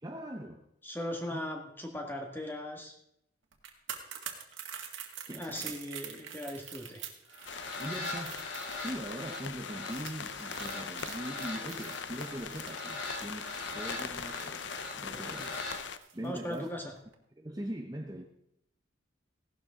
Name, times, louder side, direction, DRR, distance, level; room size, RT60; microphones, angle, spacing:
voice 1, 0.0-0.6 1.3-1.4 4.1-4.9 5.3-5.8 7.8-8.4 8.7-15.5 16.1-16.7 17.3-18.2, right 1 dB, 20° right, 3 dB, 0.7 m, -42 dB
voice 2, 0.8-2.9 5.4-7.0 15.1-15.5 16.2-16.8, left 1 dB, 10° left, 2 dB, 1.7 m, -39 dB
sound 1, 3.5-16.7 17.0-17.1, right 9 dB, 80° right, 1.9 m, -46 dB
sound 2, 7.3-15.8, left 2 dB, 85° left, 4.2 m, -42 dB
sound 3, 7.4-16.0, left 6 dB, 65° left, 0.6 m, -41 dB
16.5 x 12.0 x 3.7 m, 0.78 s
head